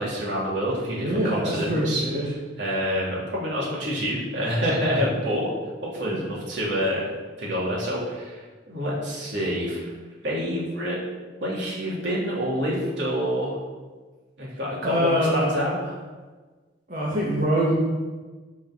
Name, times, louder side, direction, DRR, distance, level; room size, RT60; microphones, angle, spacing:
voice 1, 0.0-2.0 2.6-5.5 5.8-7.1 7.4-9.8 10.2-11.0 11.4-13.6 14.4-15.9, equal, 80° right, -5 dB, 3.4 m, -27 dB
voice 2, 0.8-2.2 6.1-6.3 14.8-15.5 16.9-17.7, equal, 45° right, -7 dB, 2.0 m, -24 dB
10.5 x 5.4 x 6.3 m, 1.3 s
head